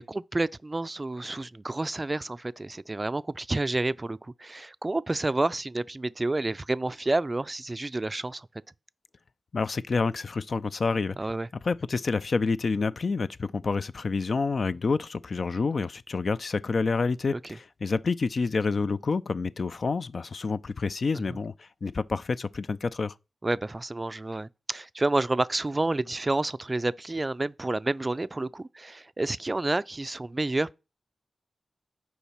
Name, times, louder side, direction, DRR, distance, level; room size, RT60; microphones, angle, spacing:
voice 1, 0.0-8.5 11.2-11.5 17.3-17.4 21.3-21.4 23.4-30.7, right 2 dB, 30° right, 0.3 m, -29 dB
voice 2, 9.5-11.2 11.6-21.5 21.8-23.1, left 4 dB, 60° left, 0.3 m, -28 dB
7.0 x 4.7 x 5.8 m
cardioid pair, 55°, 0 cm